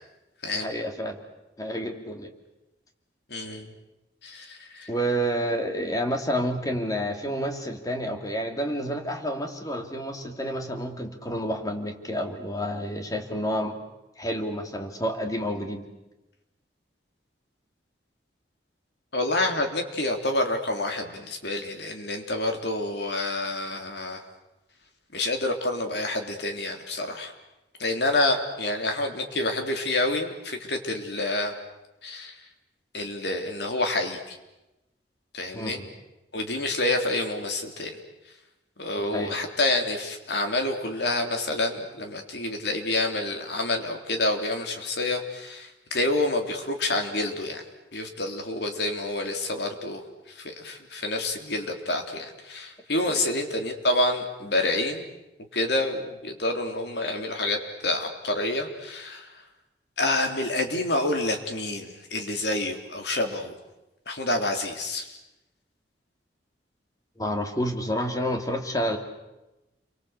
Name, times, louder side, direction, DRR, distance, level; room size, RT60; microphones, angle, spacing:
voice 1, 0.5-1.2 1.6-2.3 4.9-13.7 14.2-15.9 35.5-35.9 39.0-39.4 53.1-53.2 67.2-69.0, equal, 20° left, 4 dB, 2.7 m, -29 dB
voice 2, 3.3-3.7 4.2-4.9 19.1-24.2 25.1-27.3 27.8-31.5 32.0-32.3 32.9-34.4 35.3-35.8 36.3-38.0 38.8-47.6 47.9-50.0 50.4-55.0 55.5-57.6 57.8-59.3 60.0-63.5 64.1-65.1, left 2 dB, 70° left, 4 dB, 3.6 m, -28 dB
29.5 x 24.0 x 8.2 m, 1.0 s
head